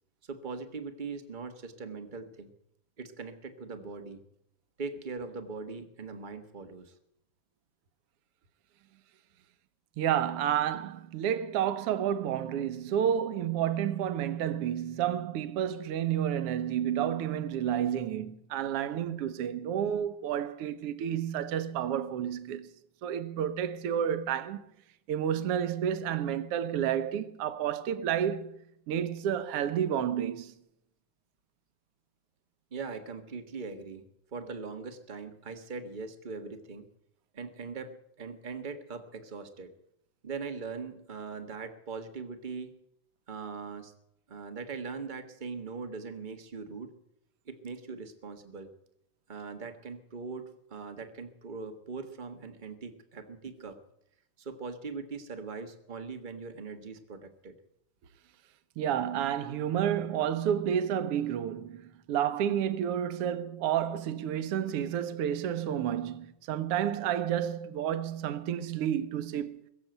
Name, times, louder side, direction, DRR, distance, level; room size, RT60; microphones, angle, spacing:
voice 1, 0.2-2.5 3.0-4.2 4.8-6.9 32.7-34.0 34.3-36.9 37.3-39.7 40.2-42.7 43.3-43.9 44.3-46.9 47.4-48.7 49.3-53.8 54.4-57.5, right 4 dB, 40° right, 0.7 m, -41 dB
voice 2, 10.0-22.7 23.0-24.6 25.1-28.5 28.9-30.5 58.8-69.6, right 9 dB, 60° right, 1.7 m, -30 dB
22.5 x 7.6 x 7.9 m
omnidirectional pair, 3.5 m